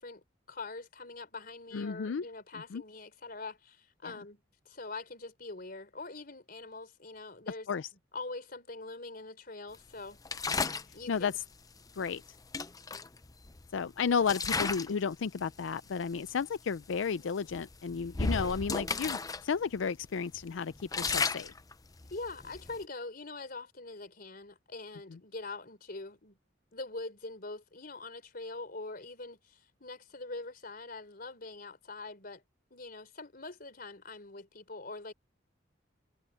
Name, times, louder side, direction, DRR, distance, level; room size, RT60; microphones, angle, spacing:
voice 1, 0.0-7.7 8.1-10.2 10.9-11.4 22.1-26.4 26.7-32.4 32.7-35.1, left 3 dB, 50° left, 3.9 m, -43 dB
voice 2, 1.7-2.2 2.7-2.8 4.0-4.1 7.7-7.9 10.6-10.7 11.1-11.4 12.0-12.2 13.7-21.5 25.1-25.2, left 6 dB, 85° left, 0.5 m, -33 dB
sound 1, 10.3-10.9 12.1-12.2 12.5-13.7 14.2-15.0 15.4-15.6 16.3-16.4 16.8-17.0 17.5-19.4 19.8-19.9 20.3-22.8, left 4 dB, 20° left, 0.6 m, -34 dB
head